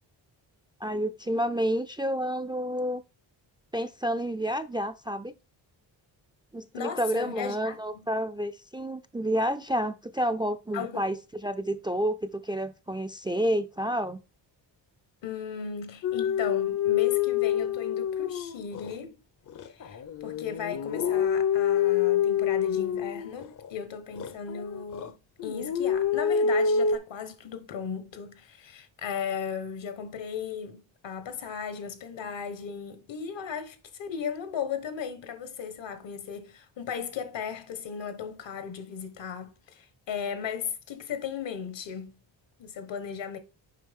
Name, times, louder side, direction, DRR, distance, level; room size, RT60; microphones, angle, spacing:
voice 1, 0.8-3.0 3.7-5.3 6.5-14.2, equal, 10° right, 0.4 m, -29 dB
voice 2, 6.7-7.8 10.7-11.0 15.2-19.2 19.6-25.2 25.4-42.1 42.6-43.4, left 7 dB, 75° left, 1.4 m, -36 dB
sound 1, 16.0-18.9 19.5-23.7 24.1-25.1 25.4-27.0, left 8 dB, 45° left, 0.6 m, -26 dB
7.5 x 5.0 x 3.6 m
cardioid pair, 95°, 45 cm